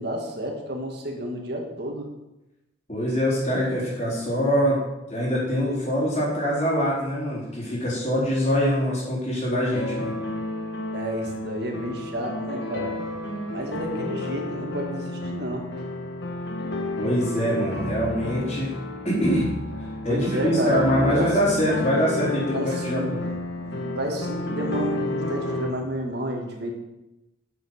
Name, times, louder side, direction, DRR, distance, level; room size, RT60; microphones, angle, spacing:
voice 1, 0.0-2.1 10.9-12.9 13.5-15.8 20.1-21.3 22.5-23.1 23.6-26.7, right 1 dB, 60° right, 1 dB, 1.9 m, -30 dB
voice 2, 2.9-4.8 5.1-10.1 17.0-18.7 19.0-19.5 20.0-23.2, equal, 35° left, -6 dB, 3.9 m, -24 dB
sound 1, 9.7-25.7, left 2 dB, 65° left, 1.4 m, -31 dB
8.1 x 7.1 x 6.5 m, 0.97 s
head